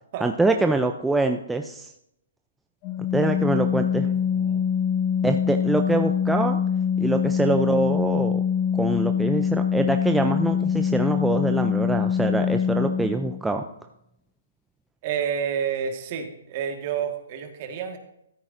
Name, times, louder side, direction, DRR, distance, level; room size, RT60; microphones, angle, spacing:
voice 1, 0.2-1.9 3.1-4.1 5.2-6.6 7.0-8.4 8.7-13.6, right 2 dB, 5° right, 5 dB, 0.4 m, -24 dB
Organ, 2.8-13.4, left 7 dB, 30° left, 0.8 m, -24 dB
voice 2, 4.0-4.7 15.0-18.0, right 7 dB, 40° right, 5 dB, 1.6 m, -30 dB
14.0 x 8.7 x 2.6 m, 0.79 s
hypercardioid pair, 145°, 0 cm